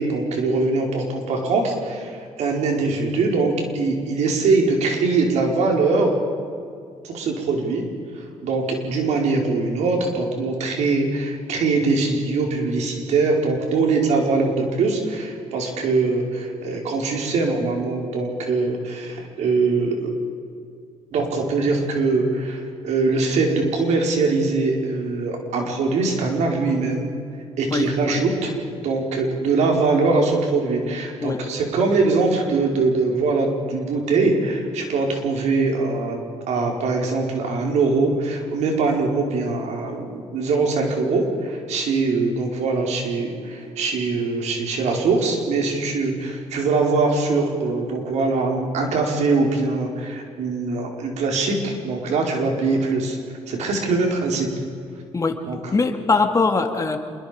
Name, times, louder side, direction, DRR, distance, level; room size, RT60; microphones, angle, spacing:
voice 1, 0.0-6.1 7.0-7.8 8.2-20.0 21.1-27.1 27.6-36.2 36.5-53.2 53.5-54.5 55.5-55.6, right 3 dB, 75° right, 1 dB, 4.9 m, -22 dB
voice 2, 27.7-28.2 31.2-31.4 55.1-55.4 55.7-57.0, left 4 dB, 30° left, 5 dB, 2.4 m, -21 dB
27.0 x 22.0 x 5.3 m, 2.4 s
cardioid pair, 90°, 12 cm